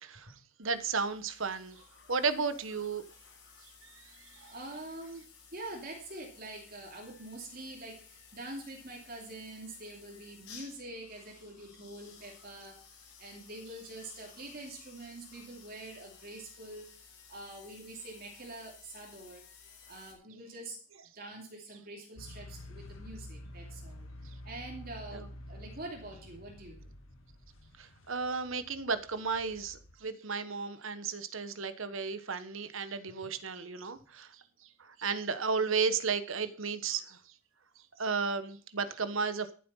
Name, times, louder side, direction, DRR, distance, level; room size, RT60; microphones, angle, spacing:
voice 1, 0.0-1.8 2.1-3.0 3.8-4.0 4.3-4.4 25.1-25.3 27.8-34.4 34.8-37.2 38.0-39.5, right 5 dB, 70° right, 1.2 m, -34 dB
sound 1, 0.6-20.1, left 6 dB, 55° left, 5.3 m, -56 dB
voice 2, 3.9-5.2 5.5-19.4 19.9-20.8 21.1-24.1 24.4-26.8 33.2-33.3, right 2 dB, 45° right, 2.7 m, -45 dB
sound 2, 22.2-30.0, left 1 dB, 75° left, 2.0 m, -49 dB
13.0 x 7.7 x 5.6 m
head